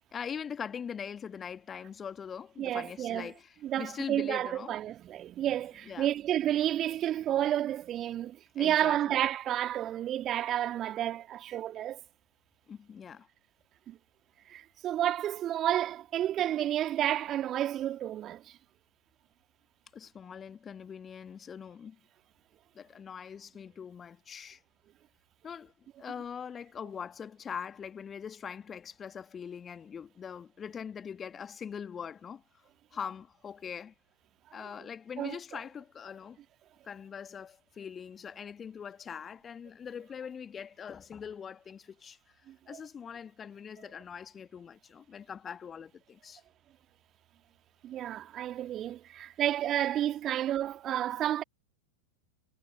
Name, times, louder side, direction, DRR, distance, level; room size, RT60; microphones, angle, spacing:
voice 1, 0.1-4.7 5.8-6.1 8.6-9.2 12.7-13.3 19.9-22.0 22.7-24.6 25.4-25.7 26.0-32.4 32.9-33.9 34.5-36.4 36.8-42.2 42.7-46.4, left 7 dB, 20° left, 1.6 m, -42 dB
voice 2, 2.6-3.3 3.6-12.0 13.9-14.0 14.5-18.4 35.2-35.4 42.7-42.8 47.8-51.4, right 12 dB, 30° right, 2.4 m, -31 dB
figure-of-eight pair, 90°, 0 cm